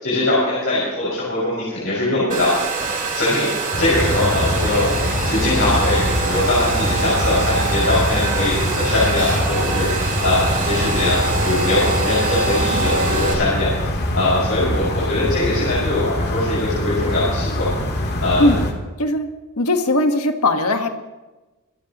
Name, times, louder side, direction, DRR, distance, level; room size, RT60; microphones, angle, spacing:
voice 1, 0.0-18.5, left 2 dB, 65° left, -8 dB, 5.9 m, -22 dB
Domestic sounds home sounds, 2.3-13.3, right 4 dB, 40° right, 4.1 m, -25 dB
sound 1, 3.7-18.7, left 1 dB, 50° left, 2.0 m, -23 dB
voice 2, 19.6-20.9, left 2 dB, 85° left, 6 dB, 1.5 m, -18 dB
26.0 x 14.0 x 3.0 m, 1.1 s
head